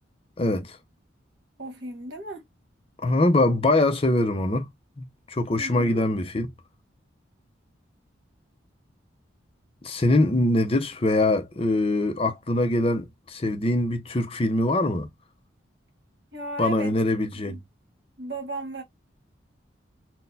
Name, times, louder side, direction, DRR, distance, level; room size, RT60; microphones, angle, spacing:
voice 1, 0.4-0.8 3.0-4.7 5.0-6.5 9.8-15.1 16.6-17.6, left 2 dB, 30° left, 0.5 m, -23 dB
voice 2, 1.6-2.4 5.5-6.0 16.3-16.9 17.5-17.6 18.2-18.8, right 2 dB, 60° right, 1.4 m, -36 dB
4.0 x 2.1 x 2.6 m
head